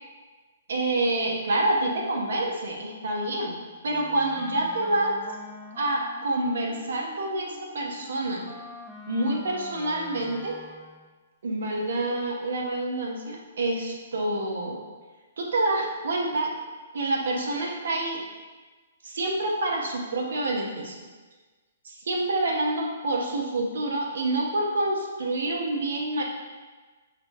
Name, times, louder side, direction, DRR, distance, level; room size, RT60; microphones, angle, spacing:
voice 1, 0.7-3.6 3.8-5.2 5.8-8.5 9.1-10.6 11.4-14.8 15.4-16.5 16.9-18.2 19.0-21.1 21.8-26.2, right 2 dB, 75° right, 0 dB, 0.7 m, -27 dB
Wind instrument woodwind instrument, 3.9-11.1, left 1 dB, ahead, 0.3 m, -45 dB
5.0 x 2.2 x 2.7 m, 1.4 s
hypercardioid pair, 140°, 0 cm